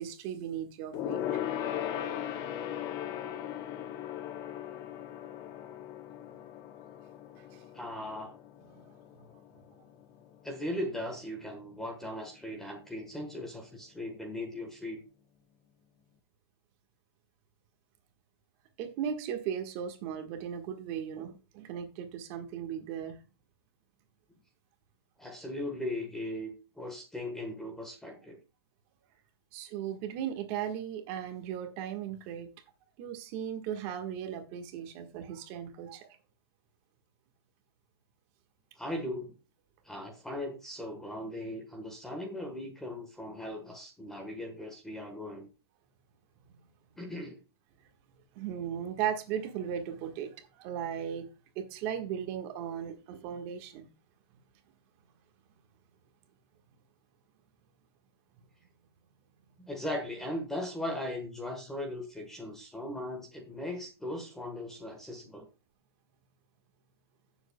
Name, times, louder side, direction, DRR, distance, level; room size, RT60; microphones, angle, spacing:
voice 1, 0.0-1.4 7.4-7.6 8.7-8.9 18.8-23.2 29.5-32.5 33.0-36.2 48.3-51.3 51.5-53.9, right 9 dB, 30° right, 1.5 m, -37 dB
Gong, 0.9-10.7 11.0-11.3 11.6-11.7, left 10 dB, 25° left, 0.7 m, -38 dB
voice 2, 7.7-8.4 10.4-15.0 25.2-28.4 38.8-39.3 39.8-45.5 47.0-47.4 59.6-65.5, left 1 dB, 5° left, 1.3 m, -38 dB
15.5 x 7.3 x 2.2 m
hypercardioid pair, 160°, 14 cm